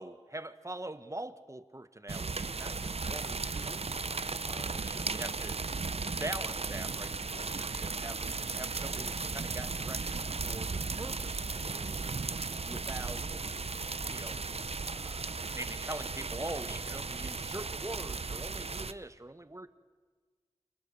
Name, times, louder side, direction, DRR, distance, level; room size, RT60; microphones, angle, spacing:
voice 1, 0.0-3.9 4.4-12.0 12.6-13.3 14.1-14.4 14.8-19.7, right 1 dB, 25° right, 12 dB, 1.2 m, -44 dB
sound 1, 2.1-18.9, right 4 dB, 60° right, 0.7 m, -36 dB
30.0 x 25.5 x 7.0 m, 1.5 s
wide cardioid pair, 50°, 12 cm